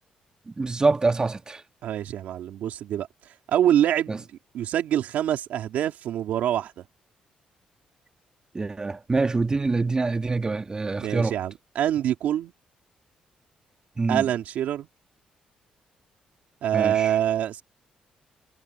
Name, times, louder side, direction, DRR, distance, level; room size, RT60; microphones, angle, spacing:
voice 1, 0.5-1.6 4.1-4.2 8.5-11.4 14.0-14.2 16.7-17.1, right 3 dB, 30° right, 2.1 m, -25 dB
voice 2, 1.8-3.1 3.5-4.3 4.5-6.8 11.0-12.5 14.1-14.9 16.6-17.6, right 11 dB, 80° right, 3.3 m, -25 dB
supercardioid pair, 65°, 3 cm